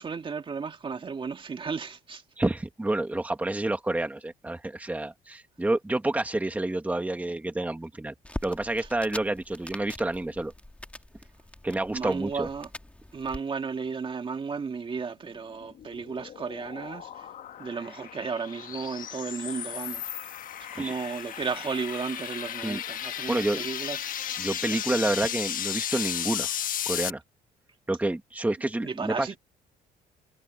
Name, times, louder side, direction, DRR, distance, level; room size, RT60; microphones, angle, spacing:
voice 1, 0.0-2.2 8.8-8.9 11.9-12.7 13.1-17.3 17.6-20.0 20.6-24.1 24.9-25.0 28.8-29.4, right 5 dB, 30° right, 2.1 m, -34 dB
voice 2, 2.4-8.1 8.4-10.5 11.6-12.5 20.7-20.9 22.6-22.8 23.3-23.6 24.4-26.5 26.8-27.2 27.9-29.3, right 2 dB, 10° right, 1.8 m, -29 dB
sound 1, 8.2-13.4, left 1 dB, 5° left, 2.1 m, -43 dB
sound 2, 15.4-27.1, left 10 dB, 55° left, 1.3 m, -35 dB
cardioid pair, 110°, 17 cm